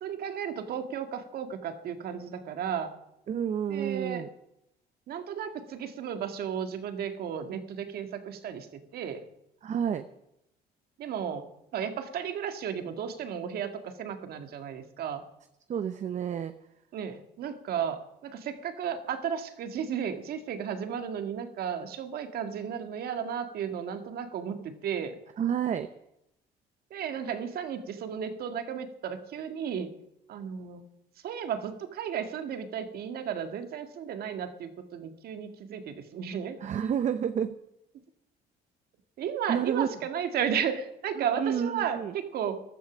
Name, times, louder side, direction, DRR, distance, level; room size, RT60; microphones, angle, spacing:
voice 1, 0.0-2.9 3.7-4.3 5.1-9.2 11.0-11.5 11.7-15.2 16.9-25.2 26.9-29.9 30.3-30.8 31.2-36.6 39.2-42.6, right 8 dB, 65° right, 8 dB, 1.8 m, -34 dB
voice 2, 3.3-4.3 9.6-10.0 15.7-16.5 25.4-25.9 36.6-37.5 39.5-39.9 41.2-42.1, right 8 dB, 45° right, 10 dB, 0.8 m, -29 dB
14.5 x 12.5 x 6.2 m, 0.83 s
cardioid pair, 110°, 17 cm